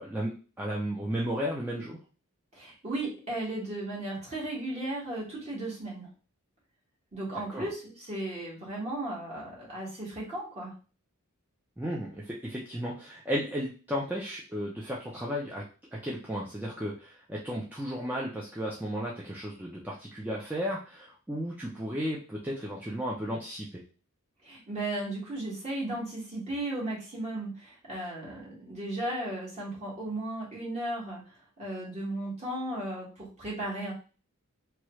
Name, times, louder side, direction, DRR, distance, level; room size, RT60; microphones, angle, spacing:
voice 1, 0.0-2.0 7.5-7.7 11.8-15.7 15.9-23.8, equal, 10° right, -4 dB, 0.4 m, -34 dB
voice 2, 2.5-6.1 7.1-10.7 24.4-31.2 31.6-33.9, right 1 dB, 30° right, -6 dB, 1.5 m, -35 dB
3.0 x 2.3 x 3.0 m, 0.36 s
head